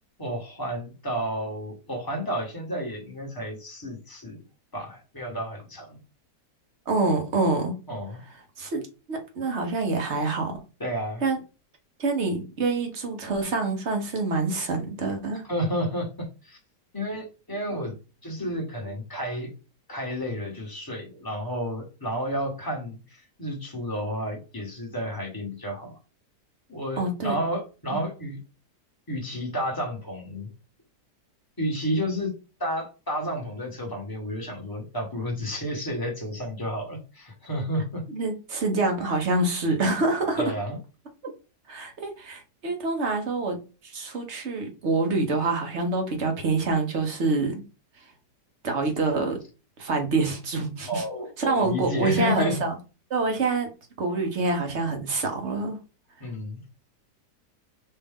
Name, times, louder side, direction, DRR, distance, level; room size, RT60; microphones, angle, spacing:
voice 1, 0.2-4.4 4.7-6.0 7.9-8.2 10.8-11.2 15.5-16.6 16.9-17.9 18.2-19.5 19.9-26.0 26.7-28.4 29.1-30.5 31.6-32.3 32.6-38.0 40.4-40.8 50.9-52.6 56.2-56.6, equal, 15° left, -1 dB, 1.3 m, -31 dB
voice 2, 6.9-7.7 8.6-8.8 9.1-10.6 11.2-11.4 12.0-15.5 27.0-27.3 27.9-28.0 38.1-40.5 41.7-43.6 43.8-47.6 48.6-49.4 49.8-51.0 51.4-52.8 53.1-53.7 54.0-55.8, right 3 dB, 45° right, 3 dB, 1.2 m, -26 dB
5.5 x 2.7 x 3.6 m, 0.32 s
omnidirectional pair, 1.8 m